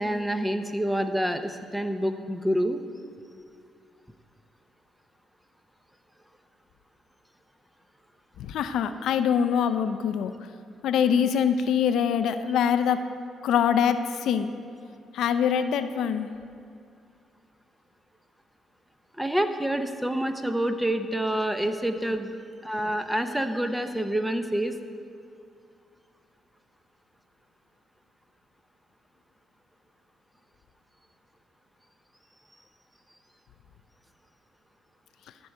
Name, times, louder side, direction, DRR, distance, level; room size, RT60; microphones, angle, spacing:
voice 1, 0.0-2.8 19.2-22.3 22.6-24.8, right 1 dB, 5° right, 8 dB, 0.7 m, -27 dB
voice 2, 8.4-10.3 10.8-13.0 13.4-14.5 15.1-16.3, left 8 dB, 80° left, 10 dB, 0.4 m, -24 dB
13.0 x 4.6 x 6.5 m, 2.4 s
cardioid pair, 90°, 0 cm